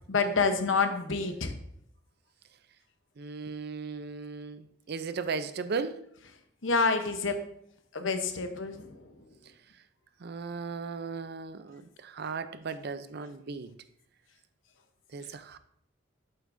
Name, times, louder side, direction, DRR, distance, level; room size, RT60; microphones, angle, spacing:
voice 1, 0.1-1.5 6.6-7.4 7.9-8.9, left 4 dB, 80° left, 0.9 m, -27 dB
voice 2, 3.2-6.0 10.2-13.7 15.1-15.6, right 5 dB, 55° right, 0.5 m, -36 dB
8.2 x 7.8 x 2.6 m
head